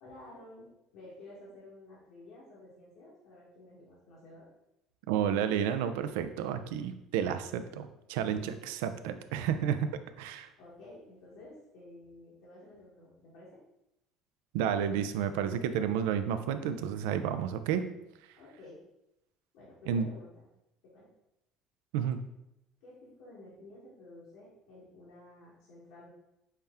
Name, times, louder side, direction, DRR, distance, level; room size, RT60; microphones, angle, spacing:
voice 1, 0.0-4.5 8.2-8.5 10.6-13.6 18.4-18.8 19.5-20.5 20.9-21.0 22.8-26.1, left 2 dB, 80° left, -7 dB, 1.2 m, -52 dB
voice 2, 5.1-9.9 10.2-10.5 14.5-17.8 19.9-20.1 21.9-22.2, right 8 dB, 85° right, 10 dB, 0.3 m, -31 dB
5.5 x 2.1 x 3.5 m, 0.88 s
supercardioid pair, 100°, 0 cm